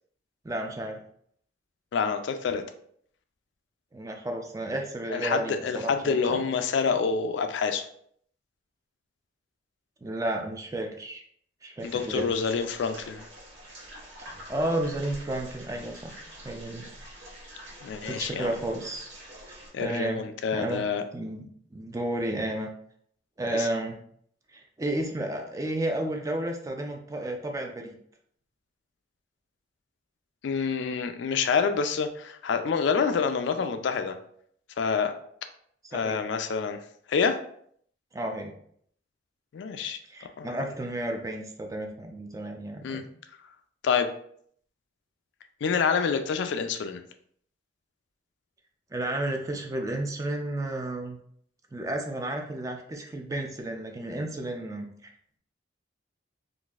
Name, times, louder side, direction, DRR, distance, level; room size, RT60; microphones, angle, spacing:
voice 1, 0.4-1.0 3.9-6.4 10.0-11.2 11.6-12.2 14.2-16.9 18.0-19.1 19.8-20.8 21.1-22.7 23.4-24.0 24.5-28.0 35.8-36.2 38.1-38.5 39.8-39.9 40.1-43.0 48.9-51.2 51.7-55.1, right 1 dB, 20° right, 3 dB, 0.4 m, -32 dB
voice 2, 1.9-2.6 5.1-7.9 11.8-13.2 17.8-18.5 19.7-21.0 23.5-23.7 30.4-34.2 34.8-35.1 35.9-36.8 37.1-37.4 39.5-40.0 40.4-40.5 42.8-43.0 43.8-44.1 45.6-47.0, left 5 dB, 70° left, 8 dB, 0.3 m, -27 dB
sound 1, 11.8-19.7, equal, 80° right, 1.2 m, -46 dB
3.9 x 2.5 x 2.4 m, 0.64 s
head